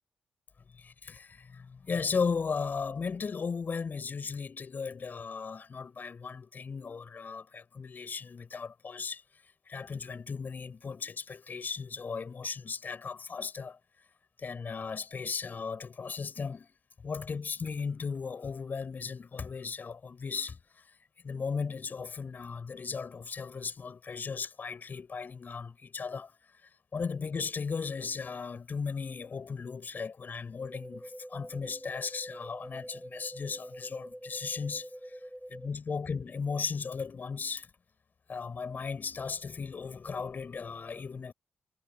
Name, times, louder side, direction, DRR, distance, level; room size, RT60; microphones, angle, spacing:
voice 1, 0.7-13.8 14.4-16.8 17.0-21.0 21.2-26.3 26.6-35.2 35.5-37.7 38.3-41.3, left 5 dB, 50° left, 7.4 m, -36 dB
sound 1, 30.7-35.7, equal, 5° right, 6.1 m, -45 dB
supercardioid pair, 55°, 4 cm